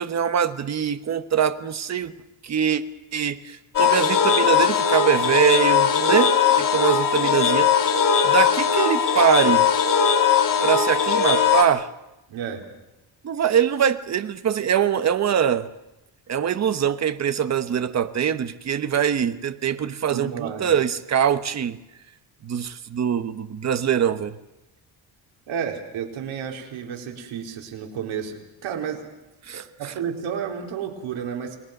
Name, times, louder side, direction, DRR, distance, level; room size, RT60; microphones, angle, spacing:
voice 1, 0.0-2.1 2.4-2.8 3.1-6.3 6.7-7.7 8.2-9.7 10.6-11.9 13.2-15.7 16.3-21.8 22.4-24.4 29.5-29.9, right 8 dB, 35° right, 11 dB, 1.1 m, -23 dB
sound 1, 3.7-11.6, left 7 dB, 40° left, 2.0 m, -19 dB
voice 2, 12.3-12.6 20.1-20.7 25.5-29.0 29.5-31.6, right 8 dB, 85° right, 2 dB, 4.4 m, -31 dB
30.0 x 20.5 x 6.7 m, 0.96 s
cardioid pair, 170°, 47 cm